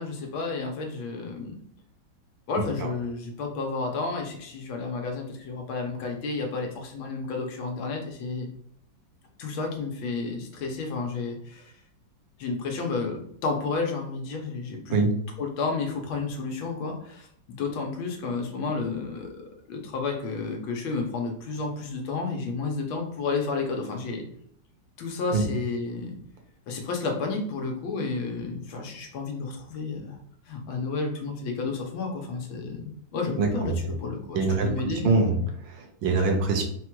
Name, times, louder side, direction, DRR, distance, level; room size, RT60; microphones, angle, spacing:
voice 1, 0.0-1.6 2.5-8.5 9.4-11.7 12.4-15.0 15.4-19.4 19.7-24.2 25.0-26.2 26.7-30.2 30.5-35.5, left 4 dB, 85° left, 2 dB, 1.7 m, -31 dB
voice 2, 33.4-33.8 34.3-34.7 35.0-35.4 35.7-36.6, right 3 dB, 75° right, 3 dB, 1.5 m, -23 dB
4.3 x 2.3 x 4.5 m, 0.66 s
omnidirectional pair, 2.1 m